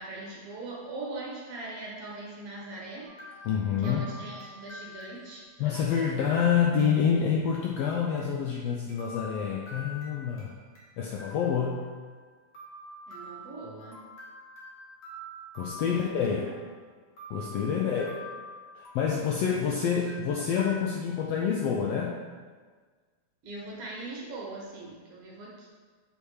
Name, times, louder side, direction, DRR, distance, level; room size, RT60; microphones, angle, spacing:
voice 1, 0.0-3.1 3.8-6.5 11.0-11.1 13.1-14.0 15.8-16.7 23.4-25.7, right 2 dB, 60° right, -4 dB, 1.9 m, -41 dB
sound 1, 3.0-7.2 7.5-7.6 8.2-8.3 8.9-10.9 11.2-12.2 12.5-16.7 17.2-19.7 20.1-20.8, equal, 40° left, 1.3 m, -46 dB
voice 2, 3.4-4.1 5.6-10.6 11.0-11.8 15.5-16.5 17.3-18.1 18.7-22.2, left 7 dB, 80° left, -1 dB, 1.5 m, -27 dB
7.0 x 4.3 x 4.8 m, 1.5 s
omnidirectional pair, 3.5 m